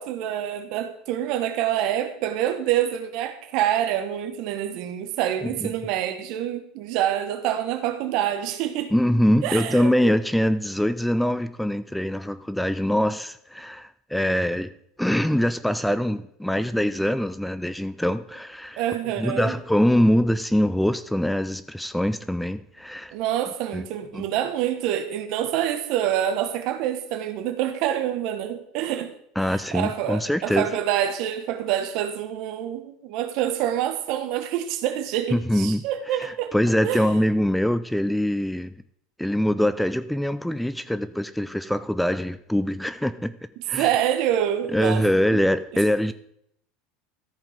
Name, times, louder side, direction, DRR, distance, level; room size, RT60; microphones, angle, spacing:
voice 1, 0.0-8.9 9.4-10.1 18.8-19.6 23.1-29.1 29.4-36.5 36.8-37.1 43.8-45.0 45.3-45.4 45.7-45.8, right 11 dB, 60° right, 1.4 m, -26 dB
voice 2, 8.9-14.7 15.0-18.8 19.1-23.1 23.7-23.9 24.1-24.2 29.4-30.7 35.3-35.8 36.1-38.7 39.2-43.4 43.7-43.9 44.7-46.1, equal, 5° left, 0.4 m, -23 dB
14.0 x 5.2 x 5.1 m
hypercardioid pair, 100°, 0 cm